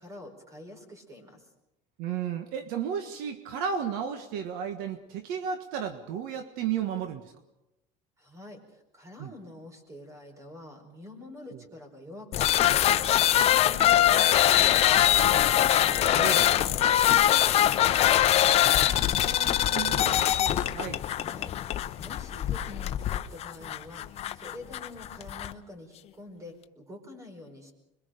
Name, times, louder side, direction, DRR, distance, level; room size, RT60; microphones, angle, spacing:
voice 1, 0.0-1.5 8.2-15.4 15.7-19.1 21.2-21.5 22.0-27.7, left 1 dB, 20° right, 5 dB, 4.8 m, -46 dB
voice 2, 2.0-7.3 9.2-9.3 11.5-11.6 16.1-16.4 18.9-21.0, right 8 dB, 70° right, 8 dB, 1.5 m, -34 dB
sound 1, 12.3-25.5, left 12 dB, 40° left, 0.8 m, -23 dB
26.0 x 22.5 x 5.1 m, 0.93 s
cardioid pair, 140°, 16 cm